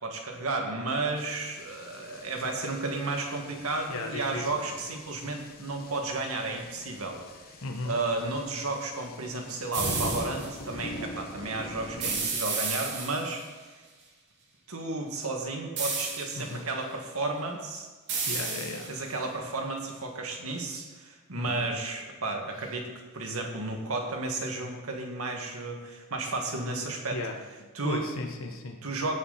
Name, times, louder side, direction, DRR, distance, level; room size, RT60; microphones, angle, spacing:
voice 1, 0.0-7.2 7.8-13.4 14.7-17.9 18.9-22.9 23.1-27.2 27.7-28.0 28.8-29.2, right 2 dB, 75° right, 2 dB, 2.1 m, -33 dB
sound 1, 1.2-12.3, left 1 dB, 45° left, 1.2 m, -42 dB
voice 2, 3.9-4.6 7.6-8.0 16.4-16.7 18.3-18.9 21.3-21.7 27.1-27.4 27.8-28.8, left 2 dB, 65° left, 3 dB, 1.1 m, -35 dB
sound 2, 9.7-10.5 12.0-13.4 15.8-16.5 18.1-19.1, right 4 dB, 55° right, 2.5 m, -32 dB
17.0 x 7.2 x 4.2 m, 1.4 s
head